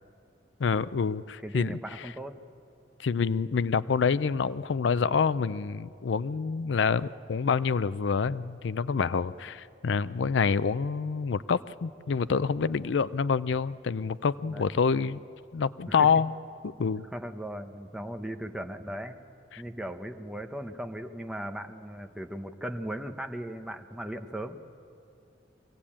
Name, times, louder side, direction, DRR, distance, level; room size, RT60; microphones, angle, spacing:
voice 1, 0.6-2.1 3.0-15.2 15.5-16.3 16.6-17.0 19.5-19.6, left 5 dB, 75° left, 17 dB, 0.4 m, -27 dB
voice 2, 1.4-2.4 14.5-14.6 15.9-16.1 17.1-19.2 19.6-24.6, right 1 dB, 5° right, 6 dB, 0.9 m, -37 dB
24.0 x 17.0 x 8.6 m, 2.6 s
head